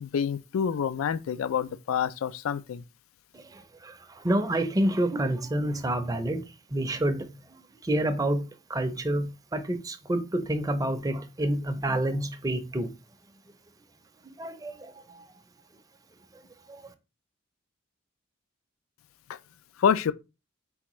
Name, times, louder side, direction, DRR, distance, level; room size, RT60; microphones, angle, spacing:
voice 1, 0.0-2.8 19.8-20.1, left 7 dB, 85° left, 0.4 m, -27 dB
voice 2, 3.3-6.4 6.7-7.3 7.8-12.9 14.4-15.2, right 1 dB, 20° right, 0.5 m, -28 dB
4.3 x 3.5 x 3.0 m
head